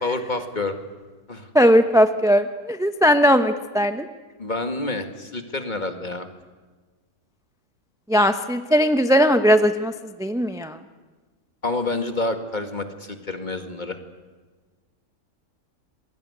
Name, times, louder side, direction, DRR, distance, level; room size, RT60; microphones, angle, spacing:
voice 1, 0.0-0.8 1.3-1.5 4.4-6.3 11.6-14.0, left 2 dB, 30° left, 7 dB, 2.1 m, -28 dB
voice 2, 1.5-4.1 8.1-9.9 10.2-10.8, equal, 5° right, 9 dB, 0.7 m, -18 dB
27.0 x 22.0 x 9.7 m, 1.3 s
omnidirectional pair, 1.5 m